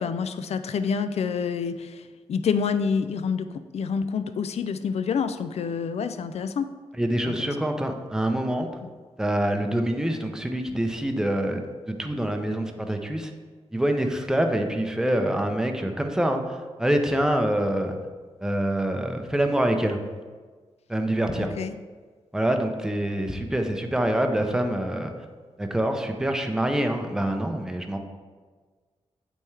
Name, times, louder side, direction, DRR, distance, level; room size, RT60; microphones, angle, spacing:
voice 1, 0.0-2.0 2.3-3.5 3.7-6.7 7.3-7.5 8.8-8.9 21.3-21.7, left 6 dB, 65° left, 11 dB, 0.4 m, -27 dB
voice 2, 7.0-8.7 9.2-13.3 13.7-18.0 18.4-20.0 20.9-21.5 22.3-25.1 25.6-28.0, right 1 dB, 5° right, 4 dB, 0.6 m, -25 dB
8.5 x 3.5 x 3.3 m, 1.5 s
cardioid pair, 80°, 11 cm